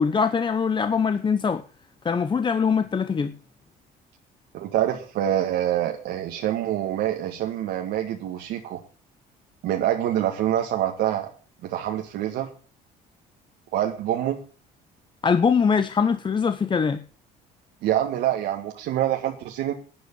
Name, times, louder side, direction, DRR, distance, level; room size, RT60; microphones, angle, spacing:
voice 1, 0.0-1.6 2.0-3.3 15.2-17.0, left 6 dB, 30° left, 0.9 m, -22 dB
voice 2, 4.5-8.8 9.6-11.3 11.6-12.5 13.7-14.4 17.8-19.7, right 11 dB, 80° right, 1.8 m, -26 dB
11.5 x 9.6 x 7.4 m
cardioid pair, 110°, 17 cm